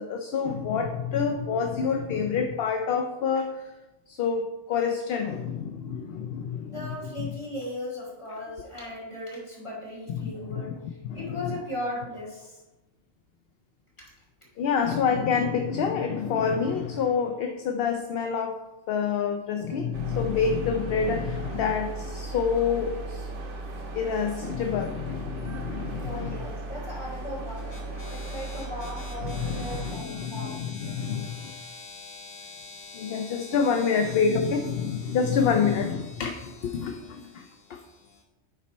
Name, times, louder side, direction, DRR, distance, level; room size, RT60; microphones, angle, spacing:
voice 1, 0.0-3.7 4.1-6.9 10.1-10.6 11.0-11.4 14.6-23.3 23.9-26.3 27.7-38.0, left 6 dB, 60° left, 5 dB, 0.7 m, -28 dB
voice 2, 6.7-12.6 14.0-14.1 26.0-27.7 28.1-30.6 34.0-34.1, left 1 dB, 25° left, -5 dB, 2.8 m, -37 dB
sound 1, 19.9-30.0, right 2 dB, 85° right, 1.4 m, -37 dB
10.5 x 4.1 x 4.2 m, 1.1 s
omnidirectional pair, 1.2 m